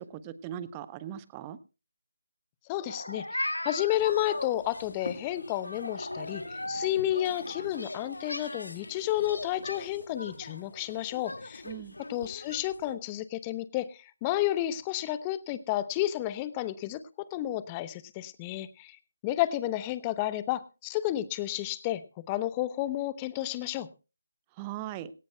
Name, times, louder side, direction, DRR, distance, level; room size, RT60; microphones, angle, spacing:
voice 1, 0.0-1.6 11.6-12.0 24.6-25.1, right 11 dB, 20° right, 16 dB, 0.8 m, -39 dB
voice 2, 2.7-11.6 12.1-17.0 17.3-19.0 19.2-22.0 22.3-23.9, left 13 dB, 20° left, 15 dB, 0.8 m, -31 dB
Meow, 2.8-4.0 5.8-6.9, left 1 dB, 90° left, 0.9 m, -35 dB
sound 1, 3.9-12.9, left 2 dB, 70° left, 1.8 m, -42 dB
18.5 x 18.0 x 2.2 m, 0.31 s
figure-of-eight pair, 155°, 0 cm